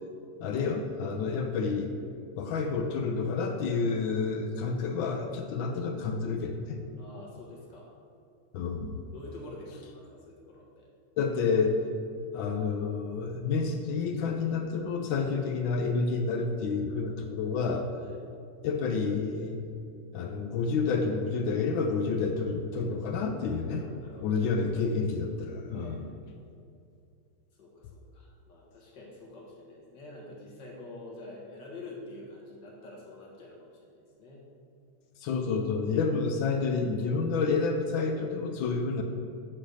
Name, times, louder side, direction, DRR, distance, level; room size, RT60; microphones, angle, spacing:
voice 1, 0.4-1.9 2.4-6.8 8.5-9.1 11.2-11.8 12.3-17.9 18.6-19.6 20.1-23.8 24.2-26.1 35.2-39.0, left 4 dB, 75° left, 5 dB, 1.2 m, -29 dB
voice 2, 7.0-7.9 9.1-10.9 18.0-18.2 22.7-23.0 23.7-24.3 25.7-26.2 27.5-34.4, left 2 dB, 55° left, -3 dB, 2.0 m, -47 dB
8.3 x 4.0 x 6.3 m, 2.5 s
omnidirectional pair, 2.4 m